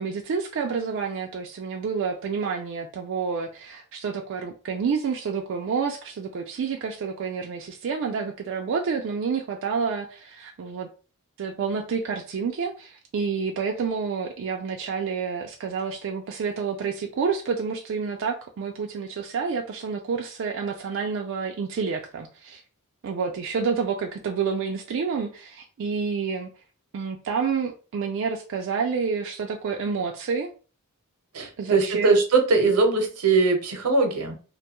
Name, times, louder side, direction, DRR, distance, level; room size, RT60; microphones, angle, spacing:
voice 1, 0.0-10.9 11.4-22.6 23.0-26.5 26.9-30.5 31.6-32.2, right 5 dB, 55° right, 2 dB, 0.3 m, -29 dB
voice 2, 31.3-34.4, right 3 dB, 90° right, 4 dB, 0.7 m, -21 dB
2.5 x 2.2 x 2.9 m, 0.36 s
head